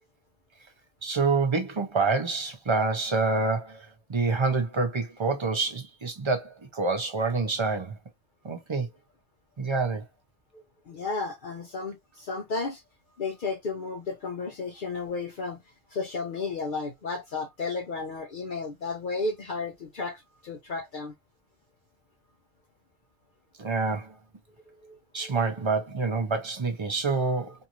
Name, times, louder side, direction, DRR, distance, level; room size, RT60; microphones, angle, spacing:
voice 1, 1.0-7.9 8.4-8.9 9.6-10.0 23.6-24.2 25.1-27.5, right 4 dB, 35° right, 0.6 m, -27 dB
voice 2, 10.5-12.8 13.2-15.6 15.9-21.1 24.7-25.4 27.4-27.5, left 4 dB, 55° left, 0.7 m, -33 dB
2.7 x 2.5 x 2.8 m
omnidirectional pair, 1.2 m